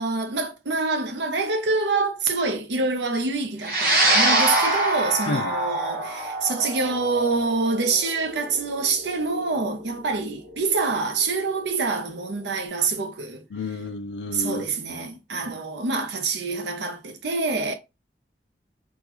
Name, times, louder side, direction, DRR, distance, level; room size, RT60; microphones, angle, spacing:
voice 1, 0.0-13.4 14.3-17.7, right 3 dB, 85° right, 0.7 m, -26 dB
sound 1, 3.6-12.2, right 2 dB, 55° right, 1.0 m, -25 dB
voice 2, 13.5-14.6 14.9-15.4, left 3 dB, 85° left, 0.5 m, -31 dB
3.6 x 2.3 x 2.9 m
head